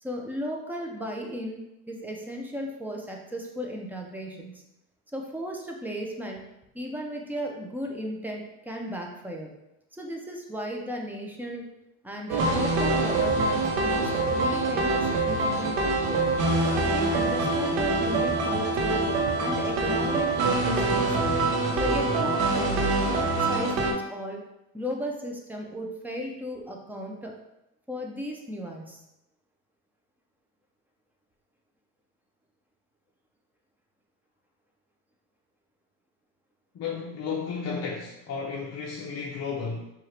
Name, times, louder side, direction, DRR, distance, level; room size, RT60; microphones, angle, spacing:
voice 1, 0.0-4.6 5.1-6.4 6.7-9.5 9.9-11.7 12.0-16.3 16.7-19.1 19.4-21.1 21.8-24.4 24.7-27.3 27.9-29.0, equal, 5° right, 0 dB, 0.3 m, -35 dB
sound 1, 12.3-23.9, right 2 dB, 65° right, 0.9 m, -25 dB
voice 2, 36.7-39.9, left 5 dB, 35° left, -3 dB, 0.6 m, -33 dB
4.5 x 2.4 x 3.2 m, 0.87 s
supercardioid pair, 105°, 48 cm